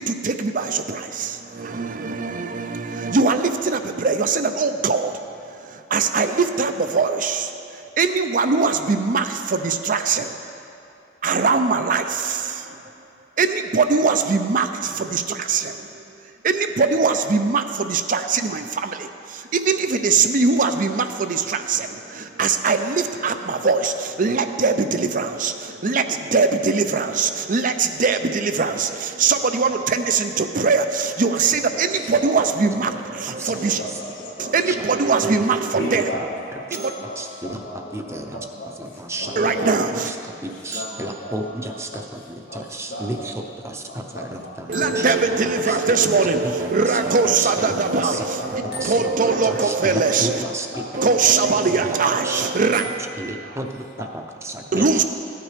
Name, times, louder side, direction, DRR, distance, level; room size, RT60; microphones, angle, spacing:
voice 1, 0.0-5.2 5.5-10.4 11.2-12.8 13.4-33.8 34.4-36.1 36.7-36.9 39.4-40.1 44.7-50.4 50.9-52.9 54.7-55.0, right 4 dB, 50° right, 8 dB, 0.6 m, -22 dB
voice 2, 31.6-32.3 32.8-34.5 35.8-39.9 40.3-41.5 41.9-42.0 42.5-44.5 44.8-44.9 45.3-45.4 45.6-45.8 46.3-46.4 47.4-48.7 49.2-49.7 50.4-50.8 51.9-52.0 52.8-52.9 53.4-53.6 54.0-54.1 54.5-54.8, left 1 dB, 75° left, -8 dB, 2.2 m, -36 dB
voice 3, 32.6-33.8 34.7-35.0 35.7-36.2 37.2-38.4 38.8-39.3 39.9-43.3 43.6-45.1 45.7-46.0 46.4-48.3 48.7-50.8 51.8-52.0 52.2-52.5 53.2-55.0, right 1 dB, 15° right, 3 dB, 0.7 m, -33 dB
sound 1, 36.7-38.7 40.7-42.5 44.7-46.1 48.7-50.0 52.7-53.2, right 2 dB, 70° right, 2.2 m, -41 dB
15.0 x 9.3 x 3.3 m, 2.7 s
head